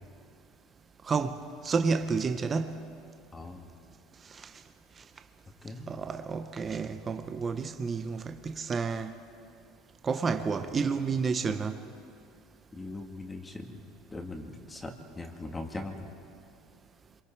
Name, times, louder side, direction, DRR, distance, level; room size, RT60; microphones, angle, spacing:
voice 1, 1.1-2.8 4.3-4.5 5.9-9.1 10.0-11.8, right 5 dB, 30° right, 1.0 m, -30 dB
voice 2, 3.3-3.7 5.6-5.9 12.7-13.9 14.1-16.1, left 2 dB, 15° left, 2.2 m, -40 dB
26.5 x 23.0 x 4.7 m
supercardioid pair, 100°, 0 cm